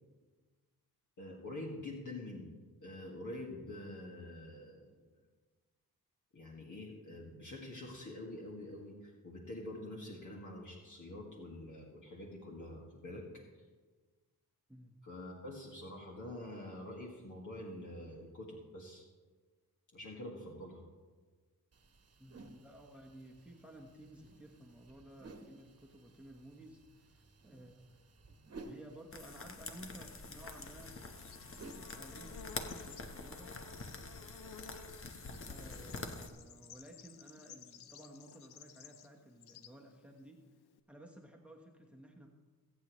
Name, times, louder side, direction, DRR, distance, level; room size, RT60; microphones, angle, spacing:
voice 1, 1.2-2.5 2.8-5.0 6.3-13.2 15.0-19.1 19.9-20.8, left 1 dB, 50° left, -3 dB, 2.1 m, -46 dB
sound 1, 21.7-33.3, right 3 dB, 40° right, 1.4 m, -57 dB
voice 2, 22.2-28.1 28.6-31.0 31.8-33.6 35.5-40.4 40.9-42.3, right 1 dB, 5° right, 1 dB, 1.2 m, -55 dB
sound 2, 29.1-36.3, left 3 dB, 35° left, 1.1 m, -46 dB
Bird / Insect, 30.2-40.8, left 6 dB, 85° left, 0.7 m, -56 dB
23.0 x 8.3 x 3.1 m, 1.4 s
wide cardioid pair, 120°, 38 cm